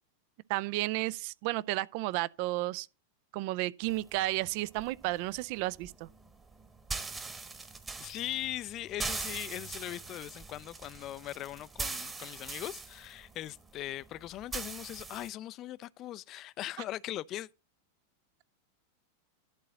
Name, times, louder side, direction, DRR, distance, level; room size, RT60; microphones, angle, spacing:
voice 1, 0.5-2.9 3.3-5.9, right 18 dB, 45° right, 0.4 m, -32 dB
sound 1, 3.8-15.3, right 3 dB, 15° right, 1.1 m, -42 dB
voice 2, 8.0-17.5, left 14 dB, 35° left, 0.4 m, -40 dB
11.5 x 3.8 x 7.7 m
figure-of-eight pair, 90°, 0 cm